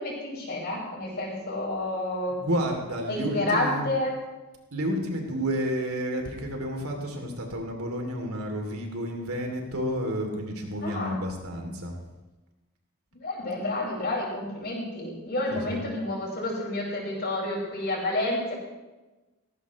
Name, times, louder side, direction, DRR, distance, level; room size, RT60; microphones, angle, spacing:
voice 1, 0.0-2.3 3.1-4.1 10.8-11.2 13.1-18.5, left 1 dB, 50° left, -3 dB, 5.2 m, -29 dB
voice 2, 2.3-3.9 4.7-12.0 15.5-15.8, equal, 80° right, 2 dB, 2.9 m, -31 dB
17.5 x 15.5 x 3.2 m, 1.1 s
head